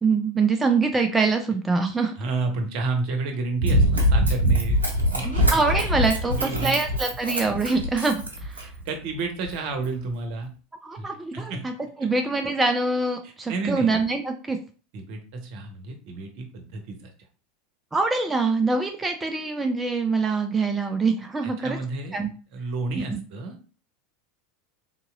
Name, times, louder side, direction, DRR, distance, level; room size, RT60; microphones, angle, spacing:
voice 1, 0.0-2.1 5.2-8.6 10.8-11.7 12.0-14.6 17.9-21.8 22.1-22.3 23.1-23.2, right 3 dB, 15° right, 5 dB, 0.4 m, -24 dB
voice 2, 2.2-4.8 5.1-5.5 6.2-6.8 8.6-10.5 11.0-11.7 13.2-13.9 14.9-17.1 21.4-22.2 22.5-23.6, right 3 dB, 55° right, 4 dB, 0.8 m, -31 dB
Run, 3.6-8.9 9.5-9.6, equal, 85° right, 0.6 m, -23 dB
3.6 x 2.9 x 2.4 m, 0.37 s
figure-of-eight pair, 80°, 0 cm